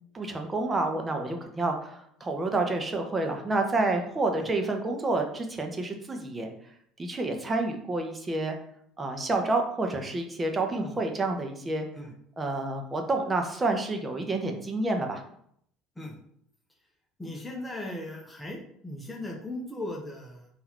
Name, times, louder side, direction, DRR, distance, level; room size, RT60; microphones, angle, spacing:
voice 1, 0.1-6.5 7.0-8.6 9.0-11.9 12.4-15.2, right 2 dB, 25° right, 3 dB, 0.9 m, -29 dB
voice 2, 17.2-20.5, left 1 dB, 10° left, -1 dB, 1.0 m, -38 dB
3.8 x 2.8 x 4.4 m, 0.68 s
hypercardioid pair, 65°, 0 cm